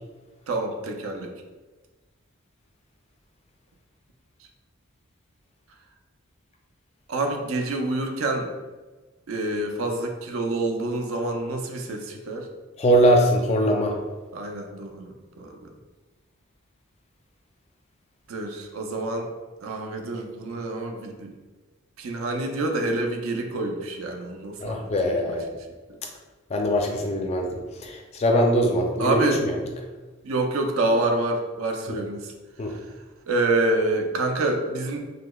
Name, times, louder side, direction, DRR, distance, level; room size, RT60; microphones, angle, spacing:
voice 1, 0.5-1.3 7.1-8.5 9.3-12.5 14.3-15.7 18.3-19.3 19.6-21.4 22.0-25.4 25.9-26.0 29.0-29.5 30.2-32.3 32.7-32.9 33.3-35.0, right 2 dB, 80° right, 3 dB, 0.5 m, -27 dB
voice 2, 12.8-14.0 24.6-25.4 26.5-29.6 31.9-32.0 32.6-32.7, equal, 30° left, 2 dB, 0.3 m, -22 dB
4.9 x 2.0 x 2.2 m, 1.3 s
head